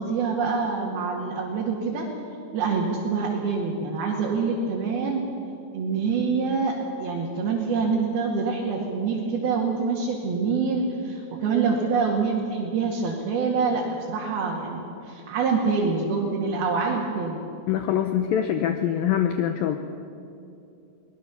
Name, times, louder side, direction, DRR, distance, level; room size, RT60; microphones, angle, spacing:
voice 1, 0.0-2.1 2.5-5.2 5.7-6.8 7.0-17.4, right 5 dB, 60° right, -3 dB, 3.8 m, -26 dB
voice 2, 17.7-19.8, left 10 dB, 80° left, 7 dB, 2.1 m, -24 dB
23.5 x 19.0 x 7.1 m, 2.7 s
omnidirectional pair, 5.1 m